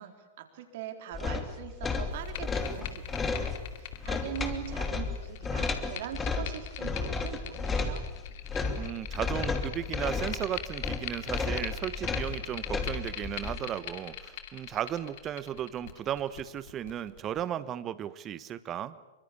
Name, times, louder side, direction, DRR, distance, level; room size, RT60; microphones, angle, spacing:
voice 1, 0.0-8.1, right 10 dB, 55° right, 6 dB, 4.0 m, -42 dB
sound 1, 1.1-13.6, left 4 dB, 15° left, 2.9 m, -33 dB
sound 2, 2.1-17.4, left 11 dB, 55° left, 2.5 m, -43 dB
voice 2, 8.7-18.9, right 10 dB, 30° right, 16 dB, 1.2 m, -35 dB
26.5 x 24.0 x 8.6 m, 1.1 s
figure-of-eight pair, 100°, 0 cm